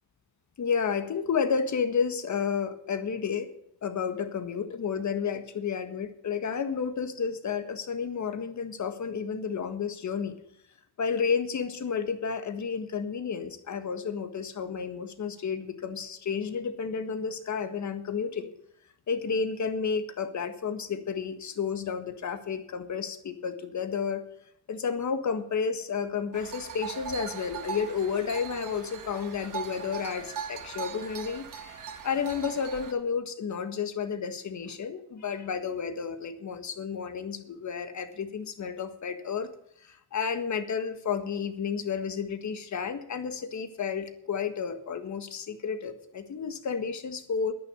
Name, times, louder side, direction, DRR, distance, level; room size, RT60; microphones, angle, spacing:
voice 1, 0.6-3.5 3.8-10.4 11.0-18.5 19.1-24.2 24.7-39.5 39.8-47.5, left 6 dB, 45° left, 9 dB, 1.6 m, -31 dB
sound 1, 26.3-32.9, right 7 dB, 50° right, 1.7 m, -40 dB
10.5 x 9.6 x 8.3 m, 0.72 s
cardioid pair, 115°, 40 cm